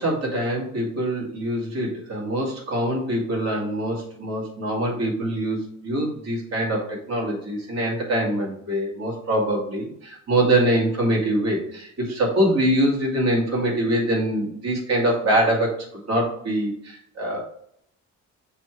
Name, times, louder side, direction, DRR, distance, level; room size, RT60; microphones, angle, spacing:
voice 1, 0.0-15.8 16.1-17.4, right 1 dB, 60° right, -2 dB, 2.7 m, -24 dB
6.7 x 3.3 x 4.7 m, 0.67 s
cardioid pair, 90°, 30 cm